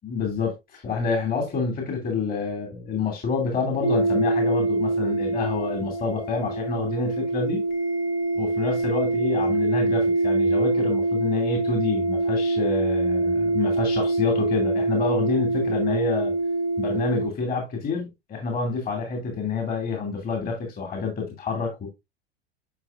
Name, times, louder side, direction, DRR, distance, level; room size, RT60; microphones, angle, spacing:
voice 1, 0.0-7.6 8.4-16.4 16.8-21.9, left 4 dB, 30° left, 2.5 m, -28 dB
sound 1, 3.8-17.3, right 2 dB, 45° left, 1.5 m, -24 dB
9.7 x 5.7 x 2.5 m
figure-of-eight pair, 80°, 32 cm